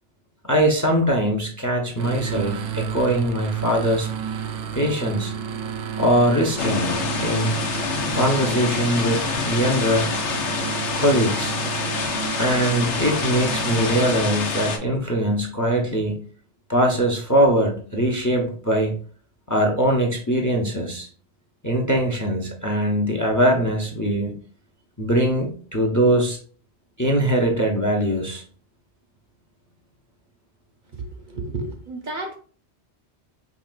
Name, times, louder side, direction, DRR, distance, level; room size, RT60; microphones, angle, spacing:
voice 1, 0.4-4.1 4.7-5.3 6.0-7.5 8.1-10.1 11.0-11.6 12.4-16.2 16.7-19.0 19.5-21.1 21.6-24.3 25.0-26.4 27.0-28.4, right 1 dB, 20° left, 0.6 m, -21 dB
sound 1, 2.0-14.2, right 7 dB, 80° right, 0.9 m, -31 dB
sound 2, 6.6-14.8, left 5 dB, 90° left, 1.1 m, -27 dB
voice 2, 30.9-32.4, right 3 dB, 50° right, 0.8 m, -32 dB
5.0 x 3.3 x 2.3 m
omnidirectional pair, 1.2 m